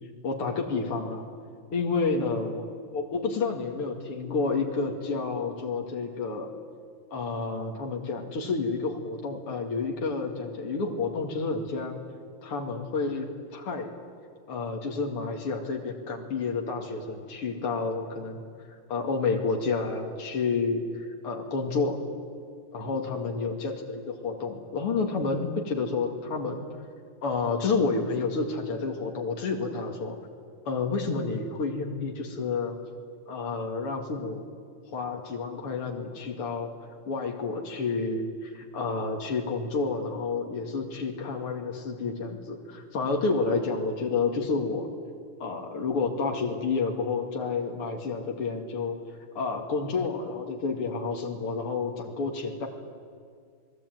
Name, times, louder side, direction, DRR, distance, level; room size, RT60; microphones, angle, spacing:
voice 1, 0.2-1.2 1.7-6.5 7.1-12.0 12.4-13.9 14.5-18.4 18.9-22.0 22.7-26.6 27.2-30.2 30.6-32.8 33.3-34.4 34.9-36.7 37.1-44.9 45.4-49.0 49.3-52.7, left 4 dB, 80° left, 1 dB, 3.2 m, -30 dB
29.0 x 20.5 x 9.4 m, 2.1 s
omnidirectional pair, 2.4 m